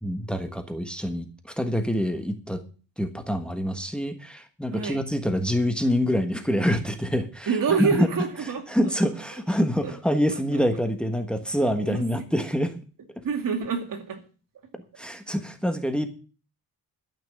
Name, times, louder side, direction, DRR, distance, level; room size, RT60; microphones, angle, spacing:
voice 1, 0.0-2.6 3.0-7.5 7.8-8.1 8.7-12.8 15.0-16.1, equal, 5° left, 7 dB, 1.4 m, -26 dB
voice 2, 7.5-8.6 9.8-9.9 10.5-10.6 11.8-12.3 13.2-14.2, right 5 dB, 65° right, 5 dB, 2.4 m, -27 dB
12.5 x 6.0 x 8.7 m, 0.38 s
cardioid pair, 115°, 36 cm